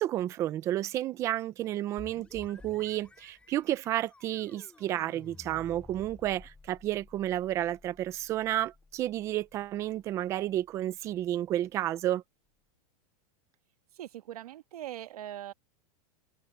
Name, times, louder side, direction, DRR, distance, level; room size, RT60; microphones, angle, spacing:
voice 1, 0.0-12.2, right 13 dB, 15° right, 0.4 m, -31 dB
sound 1, 2.0-11.5, left 3 dB, 5° left, 5.6 m, -54 dB
voice 2, 14.0-15.5, right 12 dB, 90° right, 1.4 m, -41 dB
supercardioid pair, 175°, 19 cm